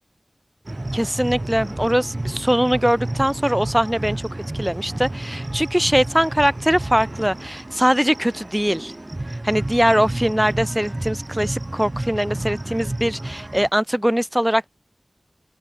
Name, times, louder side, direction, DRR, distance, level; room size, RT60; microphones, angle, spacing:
sound 1, 0.6-13.7, right 1 dB, 35° right, 1.5 m, -31 dB
voice 1, 0.9-4.2 4.5-8.9 9.4-14.7, equal, 10° right, 1.5 m, -21 dB
open air
wide cardioid pair, 50°, 0 cm